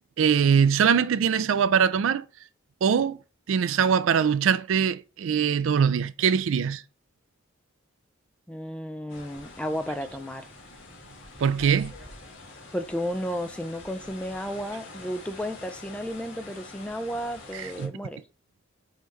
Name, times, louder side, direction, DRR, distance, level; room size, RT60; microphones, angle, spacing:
voice 1, 0.2-2.2 2.8-3.2 3.5-6.8 11.4-11.9 17.5-17.9, right 7 dB, 65° right, 0.4 m, -22 dB
voice 2, 8.5-10.5 12.7-18.2, equal, 5° left, 0.3 m, -33 dB
sound 1, 9.1-17.9, left 2 dB, 65° left, 1.5 m, -46 dB
5.5 x 3.1 x 3.1 m
head